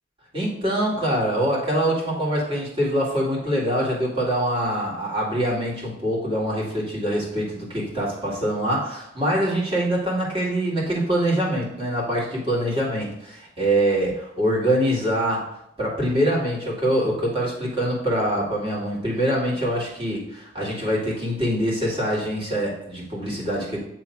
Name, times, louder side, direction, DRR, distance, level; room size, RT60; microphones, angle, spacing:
voice 1, 0.3-15.4 15.8-23.8, right 1 dB, 25° right, -4 dB, 2.1 m, -24 dB
8.2 x 3.4 x 4.5 m, 0.77 s
head